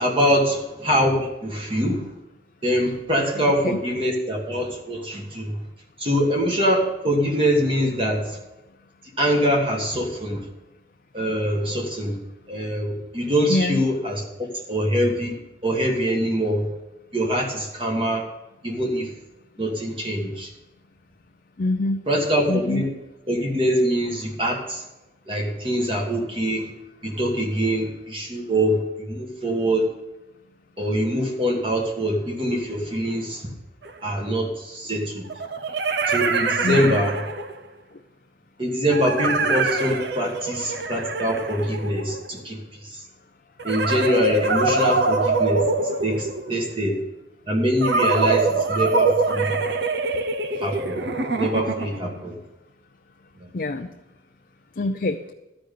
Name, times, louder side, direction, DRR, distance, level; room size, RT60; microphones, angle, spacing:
voice 1, 0.0-2.1 2.6-5.6 6.0-8.4 9.2-10.4 11.1-12.2 12.5-15.4 15.6-16.7 17.1-18.2 18.6-19.1 19.6-20.5 22.1-22.9 23.3-24.8 25.3-26.7 27.0-29.9 30.8-33.5 34.0-35.3 36.1-37.2 38.6-43.0 43.6-47.0 47.5-49.6 50.6-51.0 51.4-52.3 53.4-53.5, equal, 30° right, 0 dB, 1.6 m, -24 dB
voice 2, 3.4-3.8 13.5-13.8 21.6-22.0 22.5-22.8 36.6-37.0 53.5-53.9 54.8-55.2, left 2 dB, 50° left, 4 dB, 0.5 m, -25 dB
sound 1, 33.8-33.9 35.3-37.7 38.9-42.4 43.6-46.6 47.8-52.1, right 3 dB, 65° right, 0.8 m, -24 dB
13.0 x 5.2 x 8.3 m, 0.96 s
head